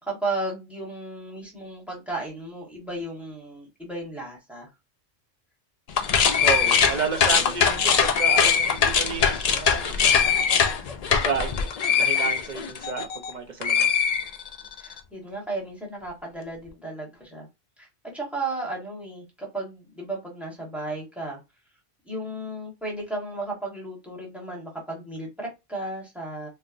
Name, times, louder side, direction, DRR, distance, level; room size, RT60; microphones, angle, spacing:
voice 1, 0.0-4.7 14.8-17.5 17.8-21.4 22.0-26.5, right 2 dB, ahead, 1.1 m, -34 dB
sound 1, 5.9-13.3 13.6-14.8, left 7 dB, 60° left, 0.4 m, -22 dB
voice 2, 6.4-10.5 10.8-14.0, right 6 dB, 50° right, 0.7 m, -32 dB
4.4 x 2.1 x 2.5 m
omnidirectional pair, 1.1 m